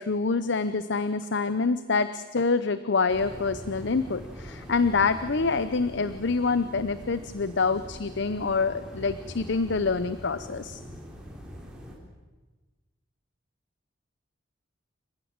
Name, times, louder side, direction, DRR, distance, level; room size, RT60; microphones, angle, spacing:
voice 1, 0.0-10.8, left 4 dB, 65° left, 13 dB, 0.8 m, -26 dB
sound 1, 3.1-12.0, equal, 5° right, 4.2 m, -43 dB
28.0 x 15.5 x 8.9 m, 1.3 s
head